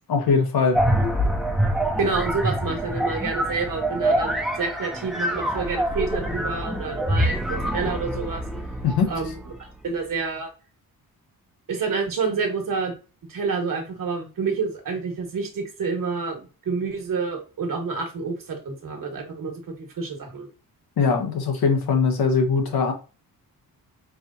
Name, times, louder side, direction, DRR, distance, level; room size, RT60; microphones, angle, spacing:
voice 1, 0.1-0.8 8.8-9.1 21.0-22.9, left 5 dB, 85° left, 1.1 m, -21 dB
sound 1, 0.7-9.5, right 1 dB, ahead, 0.5 m, -25 dB
voice 2, 2.0-8.4 9.1-9.5 9.8-10.5 11.7-12.9 13.3-20.5, right 4 dB, 65° right, 1.3 m, -28 dB
4.7 x 2.8 x 2.5 m
wide cardioid pair, 145°, 36 cm